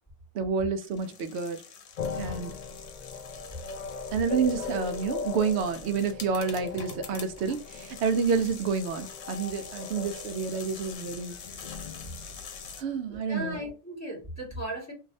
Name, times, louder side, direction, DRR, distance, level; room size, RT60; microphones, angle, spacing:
voice 1, 0.3-1.6 2.1-2.5 4.1-11.3 12.8-13.6, right 5 dB, 70° right, 0.8 m, -29 dB
sound 1, 0.8-12.8, left 6 dB, 90° left, 1.0 m, -45 dB
sound 2, 2.0-13.4, left 5 dB, 65° left, 0.4 m, -40 dB
voice 2, 13.1-14.9, equal, 15° left, 1.7 m, -37 dB
3.1 x 2.7 x 2.6 m
omnidirectional pair, 1.3 m